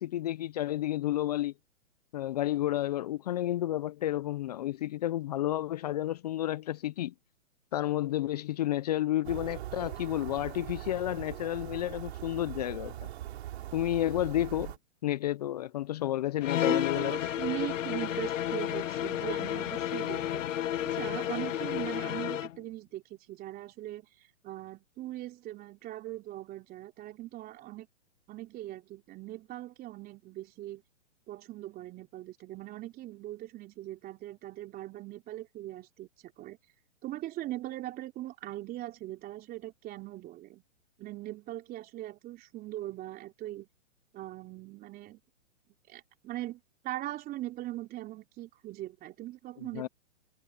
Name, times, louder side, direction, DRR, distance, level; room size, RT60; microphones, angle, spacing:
voice 1, 0.0-1.5 2.1-7.1 7.7-13.0 13.7-14.7 15.0-17.1 49.8-49.9, left 13 dB, 35° left, 0.4 m, -31 dB
sound 1, 9.2-14.8, right 13 dB, 55° right, 3.0 m, -41 dB
sound 2, 16.4-22.6, left 11 dB, 75° left, 0.8 m, -32 dB
voice 2, 16.6-24.1 24.4-27.9 28.3-30.8 31.3-36.1 36.4-36.6 37.0-40.6 41.0-43.7 44.1-45.2 45.9-49.9, right 15 dB, 25° right, 3.5 m, -40 dB
hypercardioid pair, 140°, 38 cm